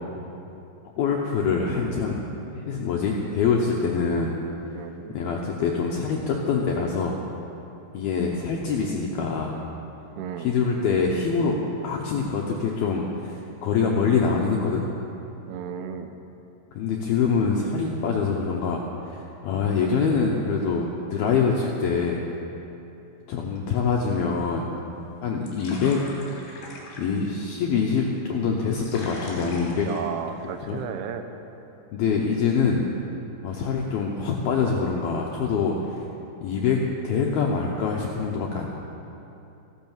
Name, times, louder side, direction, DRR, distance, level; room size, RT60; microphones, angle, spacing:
voice 1, 1.0-2.2 2.6-4.4 5.1-7.2 7.9-9.6 10.4-11.6 11.8-14.9 16.7-22.2 23.3-24.7 25.2-26.0 27.0-29.9 30.7-30.8 31.9-32.9 33.4-36.0 36.4-36.8 37.0-38.7, left 5 dB, 75° left, -1 dB, 2.2 m, -25 dB
voice 2, 4.7-5.2 10.2-10.5 15.5-16.1 29.8-31.3, right 7 dB, 80° right, 7 dB, 3.2 m, -34 dB
sound 1, 24.9-30.9, left 2 dB, 50° left, 4.6 m, -43 dB
15.5 x 12.0 x 7.3 m, 2.8 s
omnidirectional pair, 5.6 m